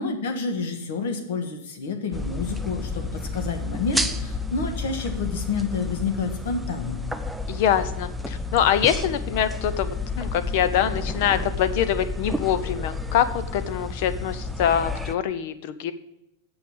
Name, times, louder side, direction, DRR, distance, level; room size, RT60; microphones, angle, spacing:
voice 1, 0.0-7.1, left 4 dB, 60° left, 6 dB, 1.6 m, -29 dB
sound 1, 2.1-15.2, left 3 dB, ahead, 0.3 m, -31 dB
voice 2, 7.5-15.9, left 9 dB, 45° left, 13 dB, 0.6 m, -24 dB
7.7 x 5.7 x 6.9 m, 0.84 s
supercardioid pair, 170°, 0 cm